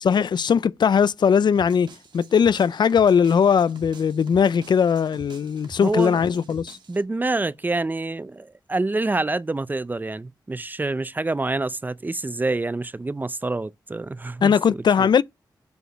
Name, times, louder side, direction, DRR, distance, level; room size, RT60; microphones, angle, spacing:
voice 1, 0.0-6.8 14.4-15.2, left 7 dB, 75° left, 0.5 m, -19 dB
sound 1, 1.5-7.0, right 3 dB, 80° right, 2.3 m, -46 dB
voice 2, 5.8-6.2 6.9-15.1, right 2 dB, 25° right, 0.5 m, -27 dB
8.0 x 5.0 x 6.5 m
wide cardioid pair, 85°, 8 cm